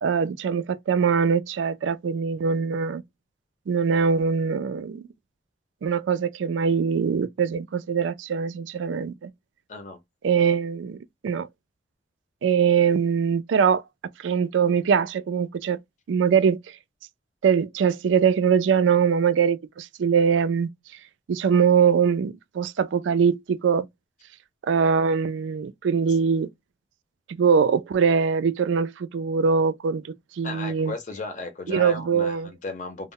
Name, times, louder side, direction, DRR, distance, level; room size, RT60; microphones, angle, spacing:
voice 1, 0.0-3.0 3.7-5.0 5.8-9.3 10.2-11.0 11.2-11.5 12.4-13.8 14.2-15.8 16.1-16.6 17.4-20.7 21.3-23.9 24.7-26.5 27.3-30.9 31.7-32.5, right 6 dB, 85° right, 0.3 m, -22 dB
voice 2, 30.4-33.1, left 3 dB, 40° left, 0.6 m, -35 dB
2.1 x 2.0 x 3.6 m
head